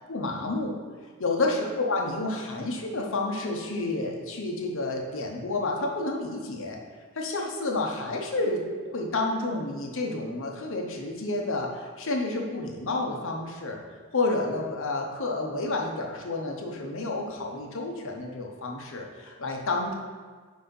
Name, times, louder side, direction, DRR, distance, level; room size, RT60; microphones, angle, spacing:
voice 1, 0.1-0.7 1.2-6.8 7.1-13.8 14.1-19.9, left 2 dB, 60° left, 1 dB, 0.9 m, -30 dB
4.7 x 4.2 x 5.4 m, 1.5 s
head